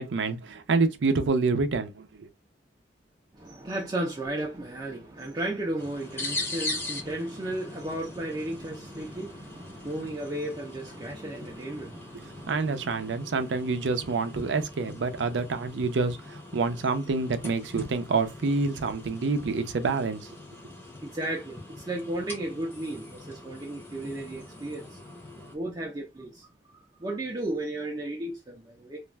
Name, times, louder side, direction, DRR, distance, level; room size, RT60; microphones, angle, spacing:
voice 1, 0.0-2.3 12.5-20.3, right 4 dB, 85° right, 0.5 m, -27 dB
voice 2, 3.3-13.1 21.0-25.0 25.3-26.5 26.7-29.0, right 1 dB, 25° right, 0.5 m, -34 dB
sound 1, 5.8-25.6, left 2 dB, 10° left, 0.7 m, -41 dB
2.4 x 2.2 x 3.1 m
head